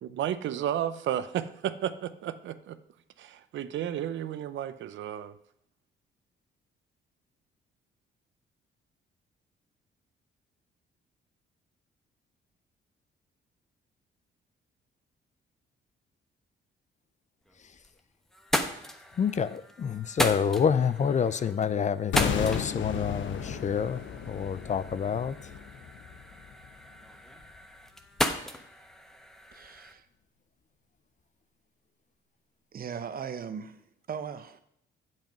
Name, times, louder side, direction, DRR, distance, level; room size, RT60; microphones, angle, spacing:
voice 1, 0.0-2.8 3.2-5.4, right 10 dB, 70° right, 13 dB, 0.6 m, -33 dB
sound 1, 17.5-18.0 18.3-29.9, equal, ahead, 1.0 m, -36 dB
voice 2, 19.2-25.4, left 7 dB, 35° left, 15 dB, 0.5 m, -28 dB
sound 2, 22.1-27.1 27.4-27.6, left 7 dB, 70° left, 0.9 m, -34 dB
voice 3, 29.5-30.0 32.7-34.6, right 7 dB, 45° right, 11 dB, 0.9 m, -39 dB
7.7 x 7.6 x 5.3 m, 0.73 s
cardioid pair, 90°, 20 cm